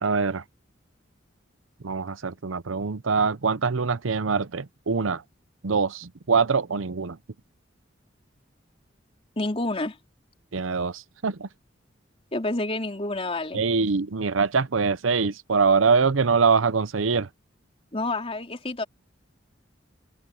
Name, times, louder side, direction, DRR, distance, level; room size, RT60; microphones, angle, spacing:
voice 1, 0.0-0.4 1.8-5.2 5.6-7.2 10.5-11.5 13.5-17.3, right 5 dB, 85° right, 0.8 m, -24 dB
voice 2, 9.4-10.0 12.3-13.6 17.9-18.8, left 2 dB, 30° left, 3.6 m, -28 dB
head